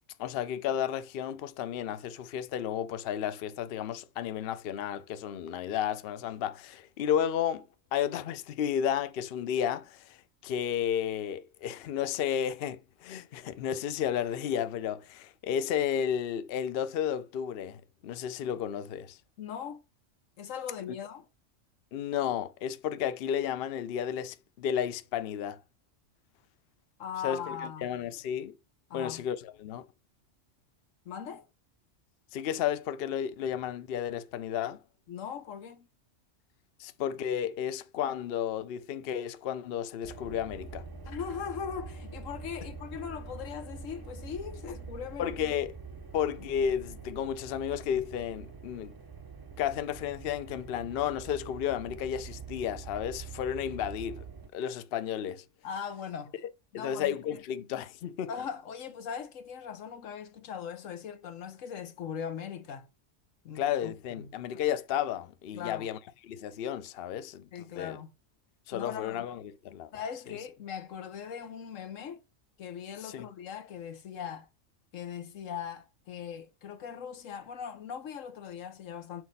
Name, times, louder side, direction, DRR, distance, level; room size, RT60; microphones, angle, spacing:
voice 1, 0.2-7.6 7.9-19.2 21.9-25.6 27.2-28.6 28.9-29.8 32.3-34.8 36.8-40.8 45.2-45.7 46.1-48.9 49.6-54.2 54.5-55.4 56.7-58.3 63.6-66.0 66.2-67.5 67.7-68.0 68.7-69.9 73.0-73.3, left 9 dB, 60° left, 0.7 m, -32 dB
voice 2, 19.4-19.8 20.4-21.3 27.0-27.9 28.9-29.2 31.0-31.5 35.1-35.9 41.1-45.4 55.6-56.4 56.7-57.4 58.3-62.9 63.4-64.3 65.5-65.9 67.5-68.1 68.7-69.2 69.9-72.2 72.6-74.5 74.9-79.2, left 7 dB, 90° left, 1.3 m, -40 dB
sound 1, 40.0-54.5, right 5 dB, 25° right, 0.5 m, -45 dB
6.4 x 4.2 x 5.2 m
omnidirectional pair, 1.3 m